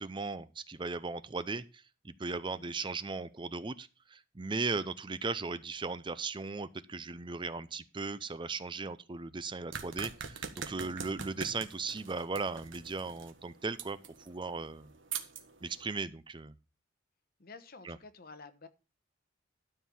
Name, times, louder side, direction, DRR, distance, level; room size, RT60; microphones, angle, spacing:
voice 1, 0.0-14.9 15.6-16.5 17.8-18.0, right 4 dB, 25° right, 0.5 m, -37 dB
voice 2, 2.5-2.8 17.4-18.7, left 4 dB, 50° left, 1.1 m, -51 dB
sound 1, 9.7-15.9, right 6 dB, 75° right, 1.5 m, -44 dB
12.5 x 4.6 x 7.1 m
head